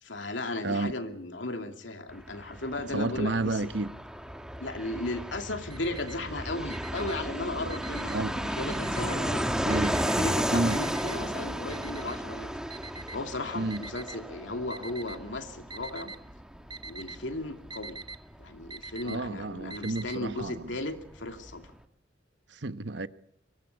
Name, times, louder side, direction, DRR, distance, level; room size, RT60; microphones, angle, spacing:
voice 1, 0.0-3.6 4.6-9.5 10.0-12.5 13.1-16.1 16.9-18.0 18.4-21.7, left 2 dB, 80° left, 2.7 m, -36 dB
Fixed-wing aircraft airplane, 2.1-20.5 20.7-20.8 21.0-21.7, equal, 5° right, 1.5 m, -34 dB
voice 2, 2.9-3.9 8.1-8.4 9.6-10.0 10.5-10.8 13.5-13.8 19.0-20.7 22.5-23.1, right 2 dB, 65° right, 1.1 m, -31 dB
Alarm, 5.4-6.3 6.7-8.3 8.7-9.3 9.7-14.2 14.7-15.3 15.6-16.2 16.5-20.2, right 3 dB, 25° right, 1.1 m, -45 dB
23.5 x 19.0 x 8.3 m
head